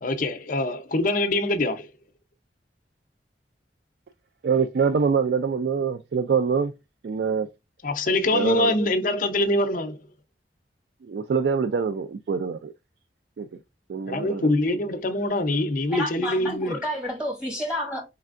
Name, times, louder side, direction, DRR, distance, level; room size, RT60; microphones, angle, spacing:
voice 1, 0.0-1.9 7.8-10.0 14.1-16.8, left 1 dB, 45° left, 0.6 m, -24 dB
voice 2, 4.4-6.7 7.0-7.5 8.3-8.7 11.1-12.7 13.4-13.5 13.9-14.4, right 6 dB, 60° right, 0.3 m, -24 dB
voice 3, 15.9-18.0, equal, 5° right, 1.3 m, -30 dB
4.5 x 3.3 x 2.4 m
head